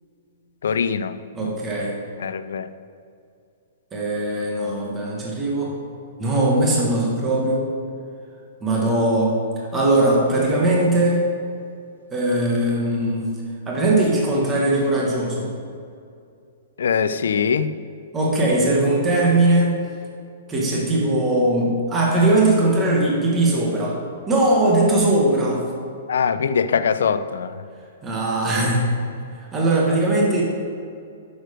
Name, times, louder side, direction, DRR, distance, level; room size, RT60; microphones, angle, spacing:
voice 1, 0.6-1.5 2.2-2.7 16.8-17.7 26.1-27.6, left 6 dB, 80° left, 13 dB, 0.5 m, -22 dB
voice 2, 1.3-2.0 3.9-5.7 6.2-7.7 8.6-9.4 9.7-11.3 12.1-13.3 13.7-15.5 18.1-19.8 20.5-24.0 24.3-25.6 28.0-28.9 29.5-30.4, right 1 dB, 10° right, -3 dB, 1.2 m, -20 dB
9.0 x 6.5 x 5.0 m, 2.4 s
hypercardioid pair, 175°, 0 cm